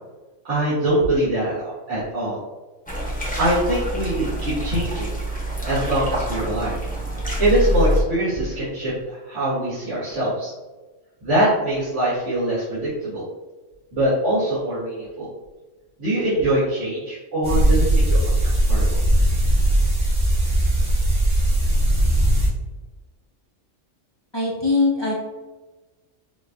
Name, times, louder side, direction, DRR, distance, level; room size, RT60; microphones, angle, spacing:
voice 1, 0.5-1.6 1.9-2.4 3.3-5.1 5.6-6.8 7.4-10.5 11.2-13.2 13.9-15.3 16.0-19.0, right 1 dB, 70° right, -13 dB, 1.8 m, -23 dB
sound 1, 2.9-8.0, equal, 5° left, 1.0 m, -26 dB
sound 2, 17.4-22.5, right 1 dB, 85° right, 1.8 m, -18 dB
voice 2, 24.3-25.1, left 3 dB, 30° left, -5 dB, 0.6 m, -21 dB
5.5 x 2.5 x 2.7 m, 1.2 s
omnidirectional pair, 1.3 m